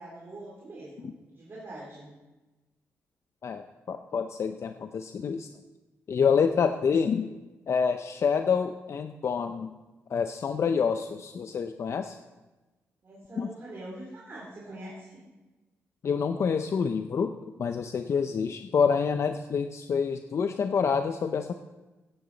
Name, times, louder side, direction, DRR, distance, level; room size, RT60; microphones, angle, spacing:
voice 1, 0.0-2.1 6.7-7.1 13.0-15.3, right 1 dB, 45° right, -5 dB, 3.2 m, -44 dB
voice 2, 3.4-5.5 6.1-7.3 7.7-9.7 10.1-12.2 13.4-13.5 16.0-17.3 17.6-21.5, left 6 dB, 60° left, 8 dB, 0.6 m, -27 dB
15.0 x 9.5 x 4.0 m, 1.2 s
cardioid pair, 80°, 5 cm